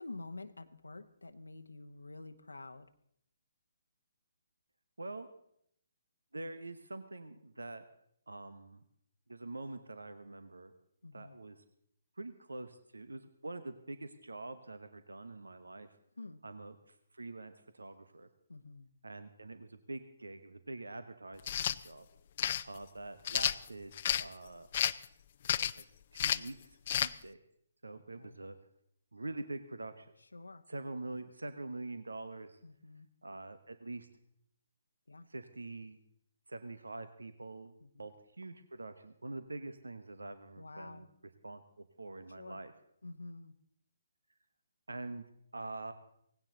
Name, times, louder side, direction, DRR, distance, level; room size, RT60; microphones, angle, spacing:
voice 1, 0.0-2.9 11.0-11.4 16.2-16.4 18.5-18.9 28.1-28.4 30.3-30.6 32.6-33.1 35.1-35.3 37.8-38.1 40.6-41.1 42.4-42.6 43.0-43.5, left 2 dB, 85° left, 8 dB, 0.9 m, -48 dB
voice 2, 5.0-5.3 6.3-7.8 8.3-8.8 9.3-10.7 11.1-11.6 12.2-15.9 16.4-18.3 19.0-22.1 22.6-23.9 24.2-24.7 25.6-25.8 26.1-26.6 26.9-27.4 27.8-28.6 29.1-30.1 30.7-32.6 33.2-34.1 35.3-36.0 36.5-41.1 41.4-42.7 44.9-45.2 45.5-45.9, right 2 dB, 80° right, 11 dB, 1.0 m, -45 dB
sound 1, 21.4-21.8 22.4-22.6 23.3-24.3 24.7-25.1 25.5-25.8 26.2-26.5 26.9-27.1, left 10 dB, 45° left, 0.5 m, -31 dB
18.0 x 16.0 x 3.9 m, 0.71 s
figure-of-eight pair, 140°, 0 cm